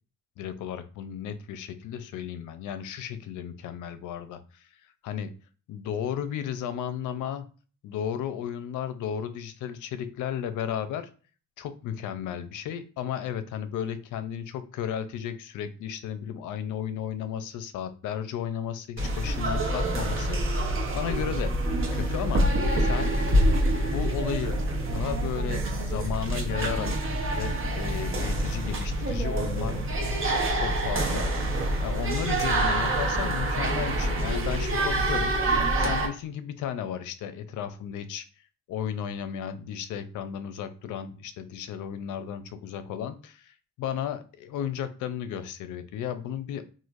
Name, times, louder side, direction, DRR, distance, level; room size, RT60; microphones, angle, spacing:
voice 1, 0.4-4.4 5.0-5.3 5.7-7.5 7.8-11.1 11.6-21.5 21.9-22.4 22.8-23.1 23.7-24.6 24.9-26.9 27.3-29.8 30.5-38.3 38.7-46.6, left 9 dB, 80° left, 11 dB, 0.5 m, -34 dB
sound 1, 19.0-36.1, right 1 dB, 45° right, 1.0 m, -26 dB
3.1 x 2.5 x 2.5 m, 0.38 s
cardioid pair, 90°, 30 cm